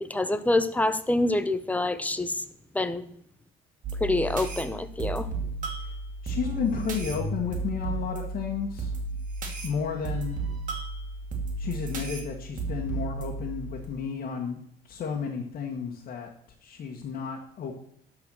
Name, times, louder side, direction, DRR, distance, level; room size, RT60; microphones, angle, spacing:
voice 1, 0.0-2.3 2.7-3.0 4.0-5.3, left 2 dB, 10° left, 12 dB, 0.8 m, -26 dB
sound 1, 3.8-13.9, right 3 dB, 50° right, 2.4 m, -33 dB
voice 2, 6.2-9.0 9.6-10.4 11.6-16.3 16.6-17.7, left 6 dB, 55° left, -1 dB, 1.8 m, -32 dB
12.0 x 4.8 x 6.4 m, 0.69 s
cardioid pair, 110°, 17 cm